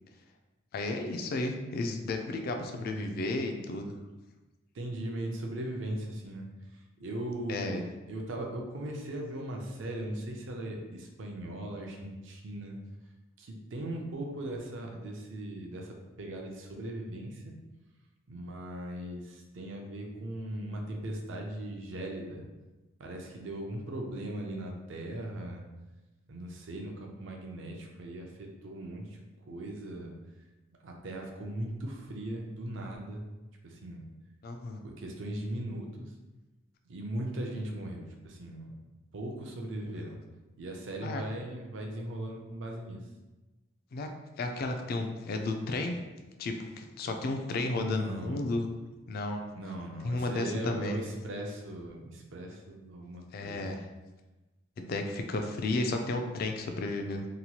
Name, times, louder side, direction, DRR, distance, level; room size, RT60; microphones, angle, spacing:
voice 1, 0.7-3.9 7.5-7.8 34.4-34.8 41.0-41.2 43.9-44.1 44.4-46.1 46.4-48.7 49.1-49.5 50.0-51.0 53.3-53.8 54.8-57.3, left 2 dB, 50° left, 4 dB, 0.3 m, -33 dB
voice 2, 2.6-3.1 4.7-6.5 6.7-12.8 13.4-17.5 18.3-22.4 23.0-25.6 26.3-29.2 29.5-30.1 30.8-33.2 33.6-34.1 34.8-36.1 36.9-38.7 39.1-40.2 40.6-43.0 47.7-48.5 49.6-53.8, right 1 dB, 65° right, 1 dB, 0.5 m, -39 dB
2.9 x 2.2 x 2.8 m, 1.1 s
head